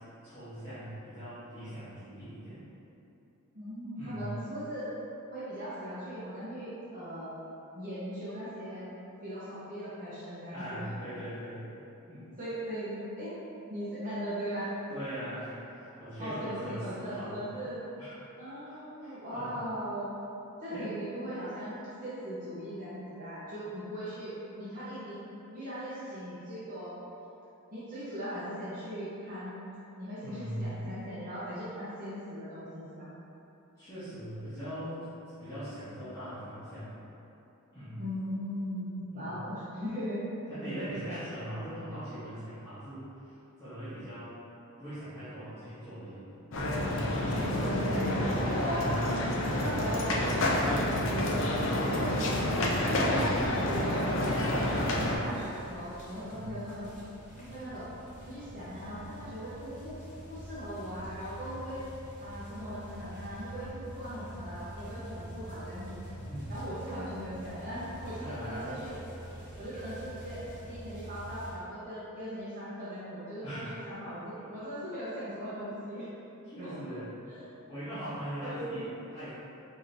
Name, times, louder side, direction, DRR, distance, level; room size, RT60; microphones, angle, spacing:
voice 1, 0.2-2.6 3.9-4.3 10.5-11.7 12.0-12.3 14.9-17.7 18.0-18.1 18.7-19.6 20.7-20.9 30.2-30.8 33.8-35.0 35.4-37.0 37.7-38.0 39.1-39.4 40.5-44.4 44.8-46.4 48.6-49.4 56.2-56.5 66.1-66.5 66.9-67.1 68.1-68.8 73.4-74.0 74.3-74.4 75.7-75.8 76.4-77.1 77.7-79.3, equal, 15° left, -17 dB, 1.0 m, -41 dB
voice 2, 3.5-4.9 5.3-7.3 7.7-8.9 9.2-10.9 12.4-13.3 13.7-14.7 16.2-17.8 18.4-20.1 20.6-25.2 25.5-27.0 27.7-29.6 30.0-33.1 38.0-40.2 47.3-48.9 49.5-52.6 53.3-56.9 57.3-57.9 58.3-59.9 60.3-61.8 62.2-66.0 66.5-68.9 69.6-76.0 76.6-76.7 77.3-77.5 78.4-78.9, equal, 40° right, -12 dB, 0.8 m, -39 dB
sound 1, 46.5-55.2, left 1 dB, 60° left, 0.5 m, -28 dB
sound 2, 54.3-71.5, equal, 35° left, 1.1 m, -46 dB
4.9 x 2.7 x 2.7 m, 2.9 s
head